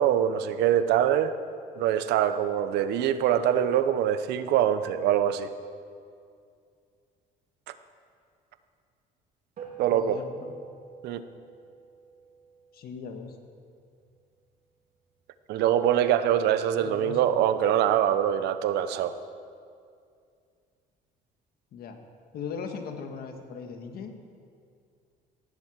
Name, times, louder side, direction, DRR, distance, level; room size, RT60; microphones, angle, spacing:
voice 1, 0.0-1.3 1.8-5.5 9.8-10.2 11.0-11.2 15.5-19.2, right 10 dB, 80° right, 12 dB, 0.8 m, -24 dB
sound 1, 9.6-14.2, right 6 dB, 60° right, 3.5 m, -48 dB
voice 2, 9.8-10.6 12.7-13.4 16.8-17.6 21.7-22.0 22.3-24.1, left 6 dB, 65° left, 5 dB, 1.7 m, -39 dB
18.0 x 7.8 x 7.4 m, 2.3 s
cardioid pair, 110°, 17 cm